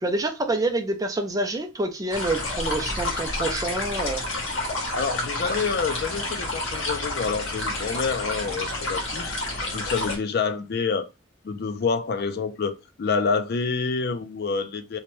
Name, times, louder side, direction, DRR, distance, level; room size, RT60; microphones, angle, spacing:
voice 1, 0.0-4.2, right 2 dB, 20° right, 0.4 m, -27 dB
sound 1, 2.1-10.2, left 2 dB, 75° left, 1.0 m, -29 dB
voice 2, 5.0-9.3 9.7-11.1 11.4-15.0, left 5 dB, 55° left, 0.4 m, -27 dB
2.8 x 2.1 x 3.1 m
head